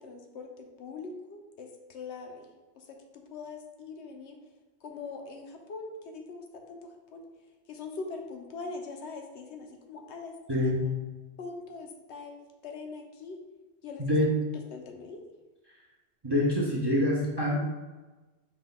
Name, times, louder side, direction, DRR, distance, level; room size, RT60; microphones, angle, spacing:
voice 1, 0.0-2.5 2.8-3.0 3.3-4.4 4.8-7.3 7.7-10.7 11.4-13.4 13.8-14.3 14.7-15.3, left 4 dB, 75° left, 3 dB, 0.9 m, -42 dB
voice 2, 10.5-10.8 14.0-14.3 16.2-17.6, left 1 dB, 35° right, -4 dB, 0.4 m, -25 dB
5.0 x 2.2 x 3.7 m, 1.2 s
omnidirectional pair, 1.2 m